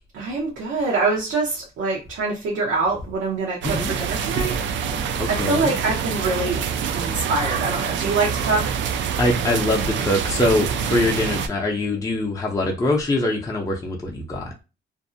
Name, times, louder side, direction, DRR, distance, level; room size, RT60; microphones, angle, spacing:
voice 1, 0.1-4.5 5.3-6.6 6.9-8.6, right 3 dB, 85° right, 0.8 m, -24 dB
sound 1, 3.6-11.5, right 7 dB, 70° right, 0.4 m, -26 dB
voice 2, 5.2-5.8 9.2-14.5, left 2 dB, 15° left, 0.5 m, -23 dB
2.5 x 2.0 x 2.6 m
cardioid pair, 90°, 20 cm